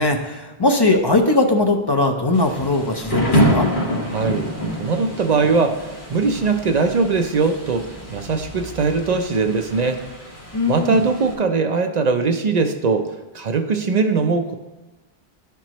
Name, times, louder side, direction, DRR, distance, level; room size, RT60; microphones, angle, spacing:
voice 1, 0.0-3.7 10.5-11.0, left 2 dB, 30° left, 3 dB, 0.5 m, -19 dB
Thunder / Rain, 2.3-11.3, equal, 55° left, 1.8 m, -26 dB
voice 2, 4.1-4.5 4.8-10.0 10.7-13.1 13.3-14.5, right 4 dB, 50° right, 6 dB, 0.6 m, -20 dB
11.5 x 4.6 x 3.0 m, 1.1 s
omnidirectional pair, 1.0 m